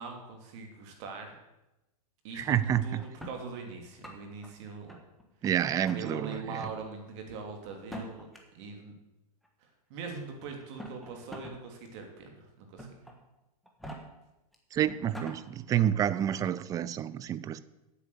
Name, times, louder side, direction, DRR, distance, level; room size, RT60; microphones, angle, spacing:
voice 1, 0.0-1.3 2.2-2.4 2.8-5.0 5.9-8.3 8.5-8.9 9.6-12.9, right 4 dB, 50° right, 3 dB, 2.7 m, -42 dB
voice 2, 2.3-3.0 5.4-6.7 14.7-17.6, right 10 dB, 20° right, 17 dB, 0.4 m, -29 dB
sound 1, 2.5-3.4 3.9-4.5 4.9-5.5 5.8-6.0 6.5-6.8 7.8-8.4 9.4-9.5 10.6-11.6 12.0-12.1 12.8-13.1 13.7-14.0 14.5-14.6 14.9-15.4, equal, ahead, 1.6 m, -43 dB
8.5 x 8.3 x 6.9 m, 0.95 s
hypercardioid pair, 135°, 19 cm